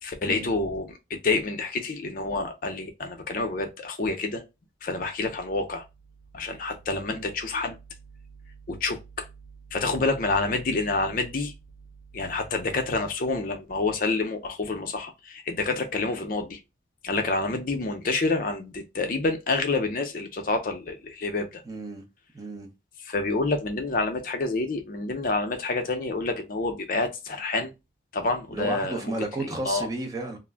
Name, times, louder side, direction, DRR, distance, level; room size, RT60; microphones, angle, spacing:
voice 1, 0.0-4.4 4.8-5.8 6.3-7.8 8.7-9.3 9.7-11.5 12.1-16.6 17.0-21.6 23.0-27.7 28.1-29.1 29.6-29.9, left 3 dB, 50° left, 0.5 m, -28 dB
voice 2, 21.6-22.0 22.3-22.7 28.5-30.4, right 2 dB, 20° right, 0.5 m, -32 dB
2.4 x 2.1 x 3.4 m
head